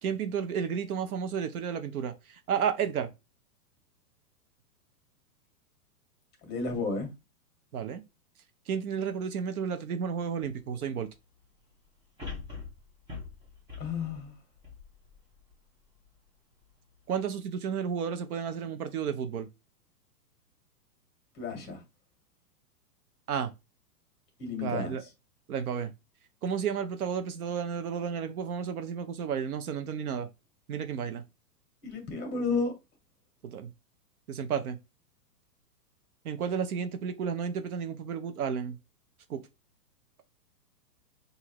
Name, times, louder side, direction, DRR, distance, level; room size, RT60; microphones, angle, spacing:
voice 1, 0.0-3.1 7.7-8.0 8.7-11.1 17.1-19.5 23.3-23.5 24.6-25.0 25.5-25.9 26.4-30.3 30.7-31.2 33.4-33.7 34.3-34.8 36.2-38.8 39.3-39.4, right 7 dB, 65° right, 0.7 m, -32 dB
voice 2, 6.4-7.1 13.8-14.3 21.3-21.8 24.4-25.0 31.8-32.7, left 4 dB, 20° left, 1.5 m, -32 dB
sound 1, 12.2-15.5 16.0-16.1, left 4 dB, 10° right, 1.0 m, -43 dB
5.8 x 2.7 x 3.0 m
hypercardioid pair, 155°, 48 cm